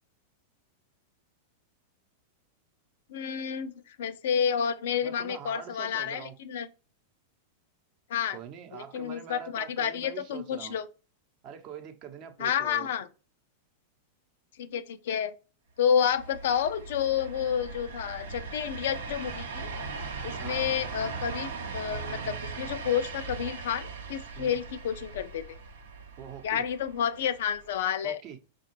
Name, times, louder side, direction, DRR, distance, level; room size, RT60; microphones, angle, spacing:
voice 1, 3.1-6.7 8.1-8.4 8.7-10.9 12.4-13.1 14.6-15.3 15.8-19.7 20.2-25.6 26.4-28.2, left 8 dB, 65° left, 0.4 m, -30 dB
voice 2, 5.0-6.4 8.3-10.8 11.4-12.9 20.4-20.7 24.4-24.6 26.2-26.6 28.0-28.4, right 9 dB, 45° right, 0.8 m, -44 dB
sound 1, 15.9-27.8, right 4 dB, 75° right, 0.7 m, -39 dB
5.5 x 2.3 x 3.1 m
hypercardioid pair, 100°, 0 cm